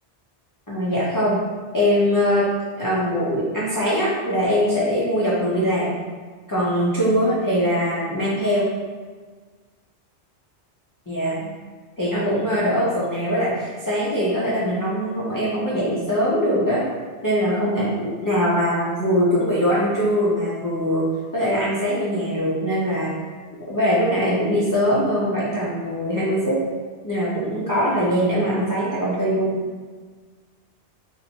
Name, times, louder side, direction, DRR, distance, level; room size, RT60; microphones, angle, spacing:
voice 1, 0.7-1.4 1.7-2.5 2.8-6.0 6.5-8.7 11.1-11.5 12.0-16.9 17.2-21.1 21.3-23.1 23.7-26.6 27.0-29.6, equal, 30° left, -9 dB, 0.4 m, -22 dB
3.2 x 2.9 x 2.7 m, 1.5 s
omnidirectional pair, 1.1 m